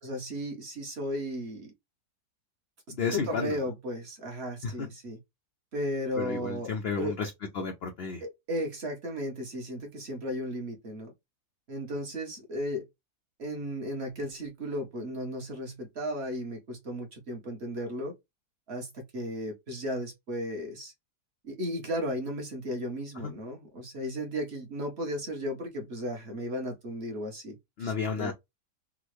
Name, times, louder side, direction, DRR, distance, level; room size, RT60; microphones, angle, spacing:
voice 1, 0.0-1.7 3.1-5.2 5.7-6.7 7.0-7.1 8.2-11.1 11.7-12.8 13.4-18.1 18.7-20.9 21.4-28.3, equal, 50° right, 1.0 m, -35 dB
voice 2, 2.9-3.6 4.6-4.9 6.2-7.3 7.5-8.2 23.1-23.3 27.8-28.3, left 5 dB, 85° left, 0.5 m, -32 dB
3.6 x 2.0 x 3.0 m
omnidirectional pair, 1.8 m